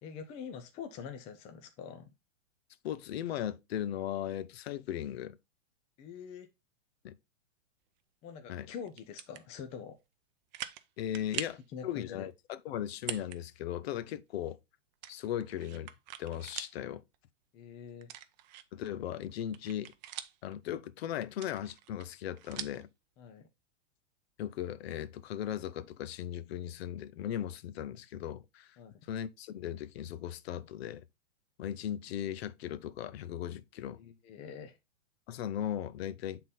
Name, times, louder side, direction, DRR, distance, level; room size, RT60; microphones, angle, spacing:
voice 1, 0.0-2.1 6.0-6.5 8.2-10.0 11.7-12.3 17.5-18.1 23.2-23.5 28.8-28.9 33.9-34.8, left 7 dB, 15° left, 0.5 m, -45 dB
voice 2, 2.8-5.4 7.0-7.2 8.5-8.7 11.0-14.6 15.1-15.9 16.2-17.0 18.7-19.9 20.4-22.9 24.4-28.8 29.1-31.0 31.6-34.0 35.3-36.4, left 11 dB, 55° left, 0.7 m, -37 dB
sound 1, 8.9-9.4 10.0-10.1 10.5-10.9 11.1-11.6 12.9-13.4 13.8-13.9 15.0-16.8 17.1-17.2 18.0-18.9 19.3-20.5 21.3-22.8, right 12 dB, 35° right, 0.5 m, -43 dB
7.2 x 3.8 x 4.0 m
hypercardioid pair, 145°, 37 cm